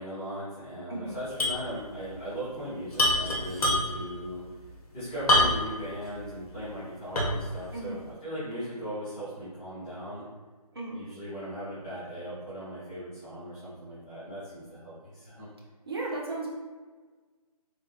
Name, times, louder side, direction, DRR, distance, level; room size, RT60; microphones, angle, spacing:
voice 1, 0.0-10.2 10.9-15.5, equal, 5° left, -16 dB, 0.6 m, -38 dB
sound 1, 1.4-1.7 1.9-2.0 2.9-4.1 5.3-5.8 6.3-6.4 7.2-7.5, left 1 dB, 65° left, 0.9 m, -24 dB
voice 2, 15.9-16.5, right 2 dB, 40° right, -4 dB, 0.6 m, -35 dB
3.3 x 2.7 x 2.7 m, 1.4 s
hypercardioid pair, 170°, 20 cm